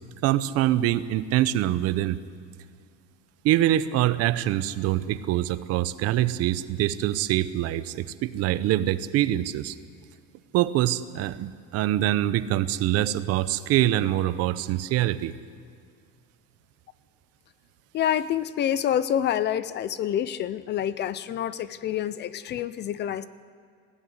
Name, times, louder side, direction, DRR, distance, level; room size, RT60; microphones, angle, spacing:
voice 1, 0.2-2.2 3.4-9.8 10.5-15.3, right 13 dB, 55° right, 15 dB, 0.8 m, -24 dB
voice 2, 17.9-23.3, left 10 dB, 35° left, 16 dB, 0.5 m, -27 dB
20.0 x 15.5 x 9.6 m, 2.2 s
cardioid pair, 170°, 29 cm